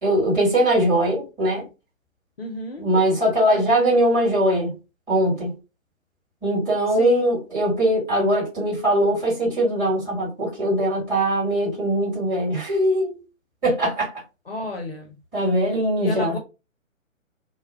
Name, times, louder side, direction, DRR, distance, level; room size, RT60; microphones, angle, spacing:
voice 1, 0.0-1.6 2.8-4.7 5.1-5.5 6.4-13.2 13.6-14.1 15.3-16.4, right 1 dB, 10° right, 1.2 m, -21 dB
voice 2, 2.4-2.9 6.9-7.3 14.5-15.2 16.0-16.4, left 2 dB, 45° left, 0.6 m, -32 dB
2.2 x 2.1 x 3.3 m
figure-of-eight pair, 135°, 40 cm